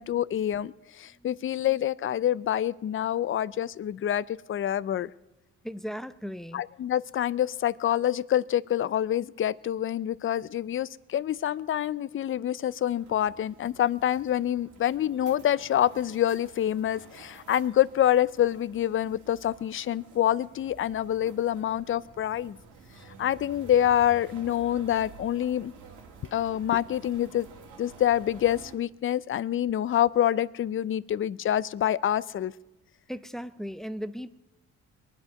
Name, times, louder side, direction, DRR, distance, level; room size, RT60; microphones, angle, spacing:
voice 1, 0.0-5.1 6.5-22.6 23.2-25.7 26.3-27.5 27.8-32.5, left 11 dB, 45° left, 19 dB, 0.5 m, -26 dB
voice 2, 1.1-1.5 5.6-6.6 33.1-34.3, equal, ahead, 12 dB, 0.7 m, -37 dB
sound 1, 12.9-28.8, right 5 dB, 85° right, 2.4 m, -51 dB
22.5 x 9.8 x 5.3 m, 0.97 s
cardioid pair, 90°, 30 cm